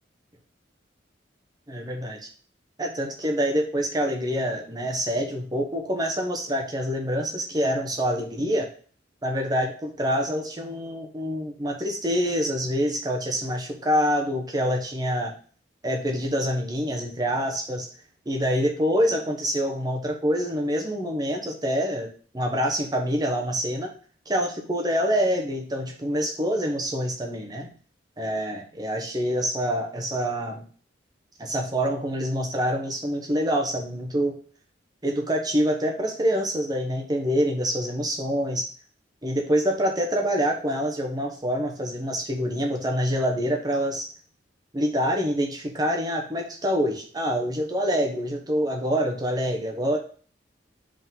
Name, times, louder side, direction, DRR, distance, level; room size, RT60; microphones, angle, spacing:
voice 1, 1.7-2.2 2.8-8.7 9.2-15.3 15.8-17.9 18.3-22.1 22.3-23.9 24.3-27.7 28.2-30.6 31.4-34.4 35.0-38.7 39.2-44.1 44.7-50.0, equal, 20° right, 2 dB, 0.9 m, -26 dB
5.1 x 3.8 x 5.4 m, 0.41 s
head